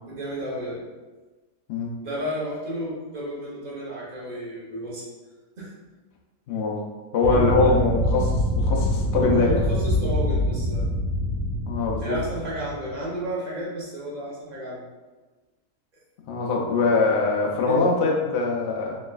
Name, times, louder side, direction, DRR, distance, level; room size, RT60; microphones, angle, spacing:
voice 1, 0.1-0.8 2.0-5.0 5.6-5.7 7.2-7.8 9.3-10.9 12.0-14.8 17.6-17.9, equal, 40° right, -6 dB, 0.7 m, -32 dB
voice 2, 6.5-6.8 7.1-9.6 11.7-12.2 16.3-19.0, left 3 dB, 75° left, -2 dB, 0.6 m, -23 dB
sound 1, 7.2-13.0, left 1 dB, 85° right, 1.2 m, -25 dB
3.2 x 3.1 x 2.2 m, 1.3 s
omnidirectional pair, 1.7 m